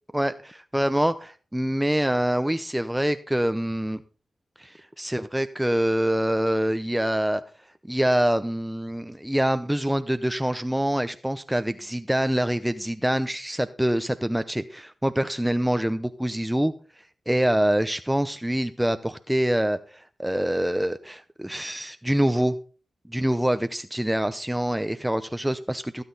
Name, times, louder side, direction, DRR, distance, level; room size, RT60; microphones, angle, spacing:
voice 1, 0.1-4.0 4.6-7.4 7.8-16.7 17.3-22.6 23.1-26.0, right 1 dB, 10° right, 11 dB, 0.7 m, -25 dB
17.0 x 8.6 x 4.1 m, 0.37 s
cardioid pair, 50°, 0 cm